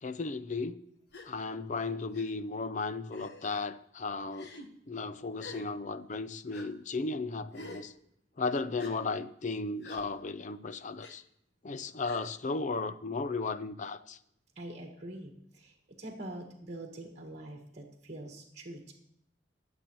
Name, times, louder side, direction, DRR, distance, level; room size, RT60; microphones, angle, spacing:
voice 1, 0.0-0.8 1.2-4.5 4.9-7.9 8.4-11.2 11.6-14.2, left 3 dB, 45° left, 0.5 m, -35 dB
Gasp, 1.1-1.3 2.1-2.3 3.1-3.5 4.3-4.7 5.4-5.7 6.5-6.7 7.5-7.9 8.8-8.9 9.8-10.0 11.0-11.1 12.0-12.3, left 2 dB, 65° left, 1.3 m, -48 dB
voice 2, 14.5-18.9, right 1 dB, 40° right, 1.6 m, -44 dB
22.5 x 7.6 x 3.1 m
head